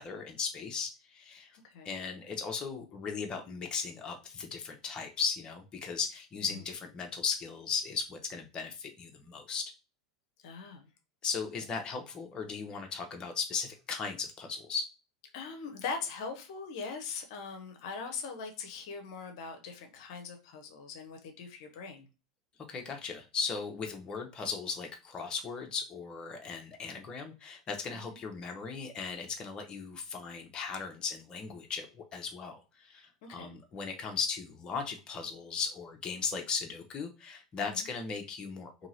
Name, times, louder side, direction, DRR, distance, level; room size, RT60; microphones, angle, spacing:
voice 1, 0.0-1.6 1.8-9.6 11.2-14.8 22.7-38.9, left 5 dB, 30° left, 0.7 m, -37 dB
voice 2, 10.4-10.9 15.3-22.1 27.9-28.2 33.2-33.6 37.5-37.9, left 5 dB, 65° left, 0.6 m, -41 dB
2.8 x 2.7 x 2.7 m
hypercardioid pair, 90°, 3 cm